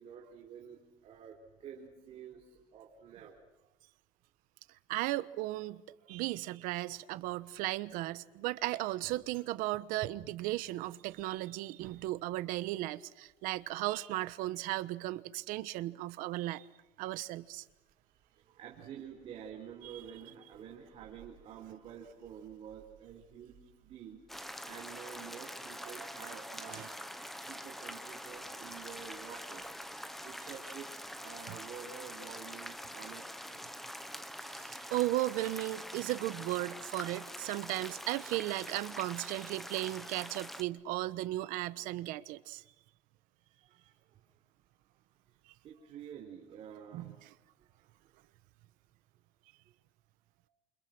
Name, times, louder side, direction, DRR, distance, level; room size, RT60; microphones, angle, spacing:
voice 1, 0.0-3.4 13.8-13.9 14.2-14.3 18.2-24.2 24.6-26.9 27.4-29.7 30.2-30.9 31.2-33.6 34.5-35.0 41.7-41.8 43.5-44.2 45.6-47.3 47.6-48.1, right 8 dB, 45° right, 4.0 m, -49 dB
voice 2, 4.9-5.8 6.1-16.6 17.0-17.6 19.8-20.0 26.7-26.9 34.5-42.6 46.9-47.3, right 17 dB, 85° right, 1.2 m, -36 dB
sound 1, 24.3-40.6, equal, ahead, 1.2 m, -45 dB
30.0 x 29.0 x 6.2 m
cardioid pair, 170°, 14 cm